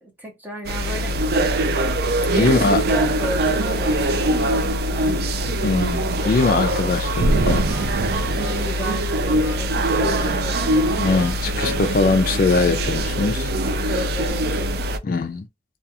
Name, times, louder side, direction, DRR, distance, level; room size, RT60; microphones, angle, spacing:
voice 1, 0.0-1.2 2.4-5.4 8.4-11.0 13.6-14.8, right 1 dB, 10° right, 0.7 m, -34 dB
sound 1, 0.7-15.0, right 1 dB, 60° right, 0.3 m, -22 dB
voice 2, 2.3-2.8 5.6-7.7 11.0-13.5 15.0-15.5, left 3 dB, 50° left, 0.4 m, -21 dB
Harmonica, 6.3-11.4, right 5 dB, 35° right, 1.4 m, -35 dB
2.3 x 2.3 x 2.8 m
head